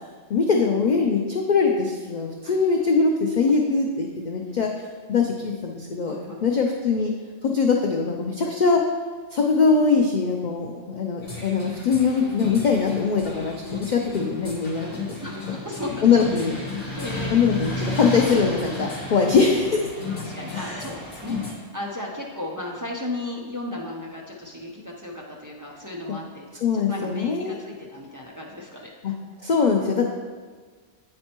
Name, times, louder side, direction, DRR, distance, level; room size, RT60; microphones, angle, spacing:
voice 1, 0.3-4.7 5.1-6.1 6.4-7.1 7.4-8.8 9.3-14.9 16.0-16.5 17.3-19.9 20.5-20.9 21.3-21.5 26.6-27.6 29.0-29.1 29.4-30.1, left 5 dB, 75° left, 1 dB, 0.4 m, -22 dB
voice 2, 6.1-6.4 15.2-16.0 16.3-16.4 17.0-17.5 20.2-29.1, left 1 dB, 25° right, -3 dB, 0.5 m, -35 dB
sound 1, 11.2-21.5, left 3 dB, 50° left, 1.4 m, -33 dB
8.7 x 4.3 x 2.9 m, 1.5 s
omnidirectional pair, 1.3 m